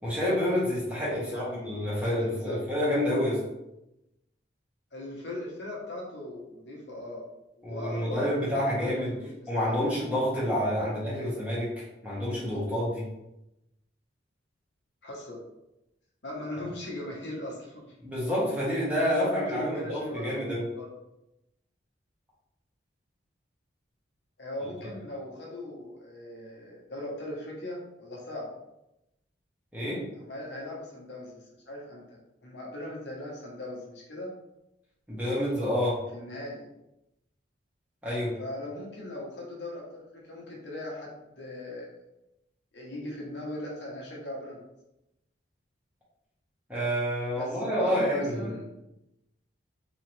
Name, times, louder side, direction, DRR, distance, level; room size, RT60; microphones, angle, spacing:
voice 1, 0.0-3.4 7.6-9.1 9.5-13.0 18.0-20.6 29.7-30.0 35.1-36.0 38.0-38.3 46.7-48.5, equal, 10° right, -8 dB, 1.3 m, -28 dB
voice 2, 1.1-2.6 4.9-7.3 7.6-9.9 10.8-11.3 15.0-15.4 16.2-18.0 19.1-20.9 24.4-28.5 30.2-34.3 36.1-36.7 38.4-41.9 42.7-44.6 47.4-48.8, left 1 dB, 65° left, -3 dB, 1.0 m, -39 dB
4.0 x 2.9 x 3.2 m, 0.91 s
head